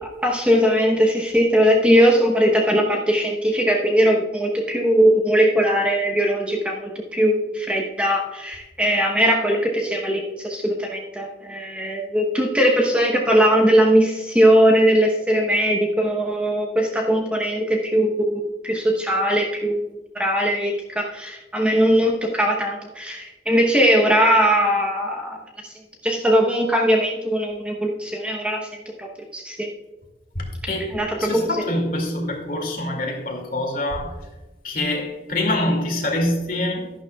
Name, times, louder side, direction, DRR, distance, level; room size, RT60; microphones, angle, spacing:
voice 1, 0.0-25.4 25.6-25.7 26.0-28.7 29.0-29.1 29.3-29.7 30.9-31.4, equal, 5° right, -1 dB, 0.9 m, -20 dB
voice 2, 30.4-34.1 34.6-36.9, left 1 dB, 50° left, 1 dB, 2.3 m, -25 dB
12.0 x 11.5 x 2.3 m, 1.1 s
head